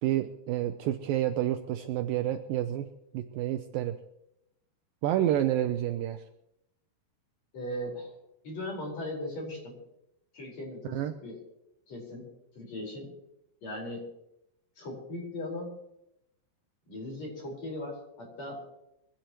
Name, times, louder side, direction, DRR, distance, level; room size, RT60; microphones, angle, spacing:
voice 1, 0.0-2.9 3.1-4.0 5.0-6.2 10.9-11.1, right 12 dB, 85° right, 8 dB, 2.0 m, -29 dB
voice 2, 7.5-8.1 8.4-9.8 10.3-11.4 11.9-13.2 13.6-14.1 14.8-15.7 16.9-18.8, left 1 dB, 40° left, -1 dB, 5.7 m, -38 dB
23.5 x 16.5 x 3.1 m, 0.82 s
omnidirectional pair, 4.9 m